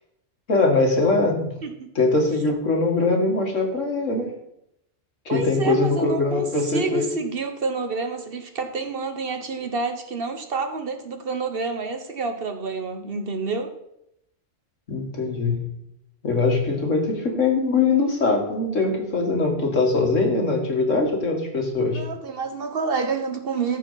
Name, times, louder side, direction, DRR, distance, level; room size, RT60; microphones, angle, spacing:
voice 1, 0.5-1.5 2.0-4.3 5.3-7.1 14.9-15.7 16.2-22.0, left 3 dB, 90° left, 1 dB, 2.3 m, -22 dB
voice 2, 5.3-6.4 6.7-13.7 21.8-23.8, right 4 dB, 50° right, 6 dB, 1.2 m, -28 dB
14.0 x 4.7 x 5.7 m, 0.79 s
omnidirectional pair, 1.3 m